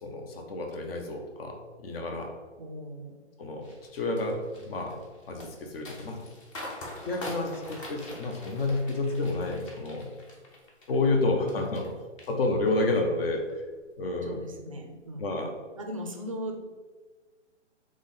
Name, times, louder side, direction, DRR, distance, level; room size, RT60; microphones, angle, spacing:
voice 1, 0.0-2.3 3.4-3.6 3.9-5.0 5.3-6.2 7.0-10.1 10.9-11.9 12.3-13.4 14.0-14.4 15.2-15.5, left 2 dB, 55° left, 3 dB, 0.9 m, -29 dB
voice 2, 2.6-3.2 14.2-16.7, equal, 30° right, 3 dB, 0.4 m, -39 dB
sound 1, 3.6-11.9 12.2-12.8 13.2-13.5, left 1 dB, 25° left, 0.7 m, -43 dB
3.7 x 3.2 x 3.8 m, 1.4 s
hypercardioid pair, 150°, 36 cm